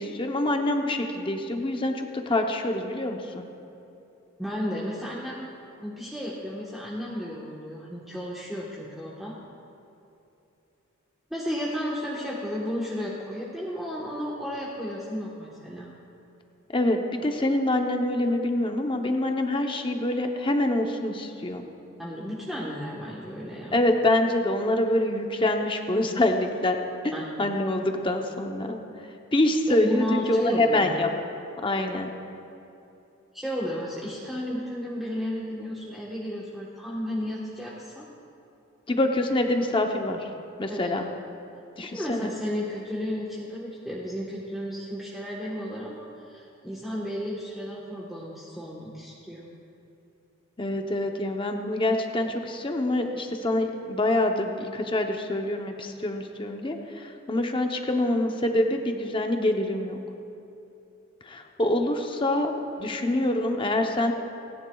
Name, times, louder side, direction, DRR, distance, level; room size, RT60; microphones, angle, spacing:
voice 1, 0.0-3.5 16.7-21.7 23.7-26.8 27.0-28.8 29.3-31.1 31.6-32.1 38.9-40.3 40.6-41.1 41.8-42.3 50.6-60.0 61.2-64.1, left 1 dB, 25° left, 3 dB, 0.7 m, -25 dB
voice 2, 4.4-5.4 5.8-9.3 11.3-15.9 22.0-23.8 27.1-27.3 29.8-30.9 33.3-38.0 40.7-40.9 41.8-49.4, equal, ahead, -6 dB, 1.2 m, -33 dB
29.0 x 10.5 x 2.3 m, 2.8 s
head